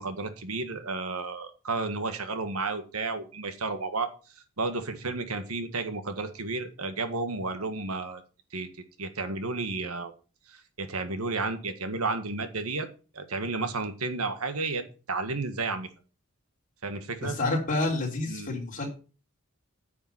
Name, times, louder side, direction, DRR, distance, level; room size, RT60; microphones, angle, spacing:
voice 1, 0.0-4.1 4.6-8.2 8.5-8.7 9.0-10.1 10.5-12.9 13.1-15.9 16.8-17.3 18.3-18.5, right 3 dB, 80° right, 9 dB, 1.7 m, -32 dB
voice 2, 17.2-18.9, left 2 dB, 40° left, -1 dB, 3.6 m, -28 dB
9.7 x 7.1 x 5.7 m, 0.35 s
head